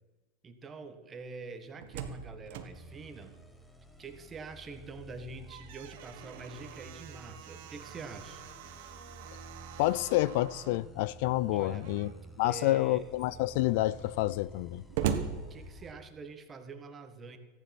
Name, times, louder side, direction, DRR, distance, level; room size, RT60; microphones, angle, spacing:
voice 1, 0.4-3.3 4.0-8.4 11.5-11.8 12.4-13.0 15.5-17.4, right 4 dB, 25° right, 1.6 m, -45 dB
Slam, 1.5-4.3 4.7-4.8 5.2-10.9 11.7-12.3 12.8-12.9 13.1-16.3, right 8 dB, 65° right, 1.4 m, -41 dB
sound 1, 2.7-15.9, right 1 dB, 5° left, 1.3 m, -52 dB
voice 2, 9.8-12.1 12.4-14.8, left 16 dB, 65° left, 0.4 m, -28 dB
14.5 x 10.0 x 6.1 m
hypercardioid pair, 105°, 0 cm